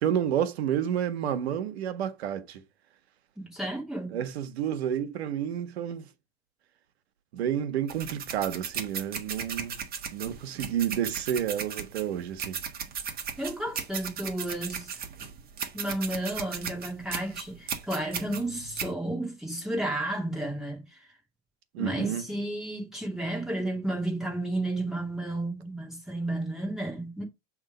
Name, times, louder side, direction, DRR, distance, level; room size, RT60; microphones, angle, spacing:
voice 1, 0.0-2.6 4.1-6.1 7.3-9.8 10.1-12.6 21.7-22.2, right 10 dB, 85° right, 1.2 m, -30 dB
voice 2, 3.4-4.2 13.4-15.0 15.7-21.0 21.8-27.2, right 1 dB, ahead, 2.6 m, -32 dB
sound 1, 7.9-18.9, right 7 dB, 30° right, 1.4 m, -36 dB
7.6 x 3.6 x 5.0 m
supercardioid pair, 130°, 31 cm